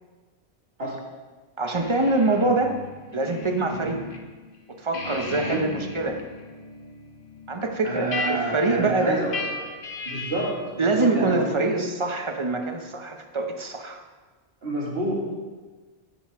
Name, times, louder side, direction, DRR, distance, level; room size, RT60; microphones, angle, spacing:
voice 1, 1.6-2.8 3.1-4.0 4.7-6.2 7.5-9.3 10.8-14.0, right 3 dB, 30° right, 4 dB, 0.8 m, -25 dB
sound 1, 1.7-4.2 4.5-10.7, left 3 dB, 55° left, 1.1 m, -36 dB
voice 2, 5.3-5.7 7.8-9.4 10.1-11.9 14.6-15.3, right 1 dB, 65° right, -3 dB, 2.3 m, -29 dB
9.4 x 8.8 x 3.6 m, 1.3 s
omnidirectional pair, 1.1 m